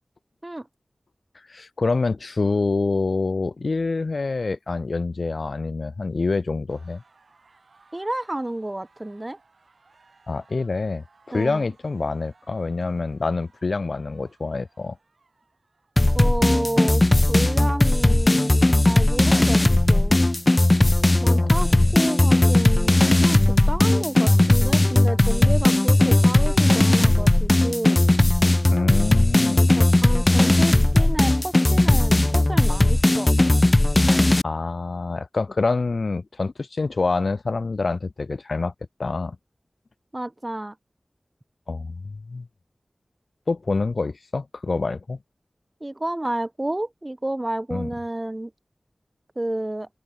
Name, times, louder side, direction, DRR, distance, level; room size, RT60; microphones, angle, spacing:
voice 1, 1.5-7.0 10.3-15.0 21.3-21.5 21.7-22.0 28.7-29.9 34.4-38.7 39.0-39.4 41.7-42.5 43.5-45.2 47.7-47.9, left 3 dB, 70° left, 0.9 m, -26 dB
sound 1, 6.7-17.4, right 4 dB, 80° right, 6.4 m, -60 dB
voice 2, 7.9-9.4 11.3-11.7 16.1-17.0 17.3-20.2 21.2-28.0 29.7-33.3 40.1-40.8 45.8-48.5 49.4-49.9, right 1 dB, 25° right, 2.0 m, -30 dB
sound 2, 16.0-34.4, left 2 dB, 30° left, 0.4 m, -17 dB
open air
wide cardioid pair, 75°, 0 cm